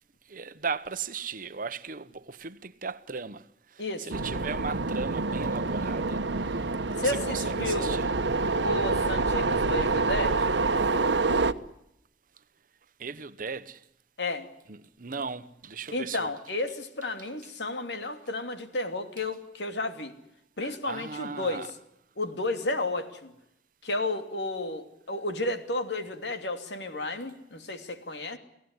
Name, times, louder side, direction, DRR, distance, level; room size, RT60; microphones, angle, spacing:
voice 1, 0.3-3.4 3.8-6.2 6.9-8.1 13.0-13.8 14.7-16.3 20.6-21.7, right 5 dB, 50° right, 1.0 m, -37 dB
voice 2, 3.8-4.1 7.0-8.0 8.6-10.5 14.2-14.5 15.9-20.1 20.6-21.7 22.2-23.3 23.8-28.4, left 2 dB, 80° left, 2.9 m, -32 dB
sound 1, 4.1-11.5, right 3 dB, 90° right, 1.1 m, -27 dB
30.0 x 17.0 x 9.7 m
head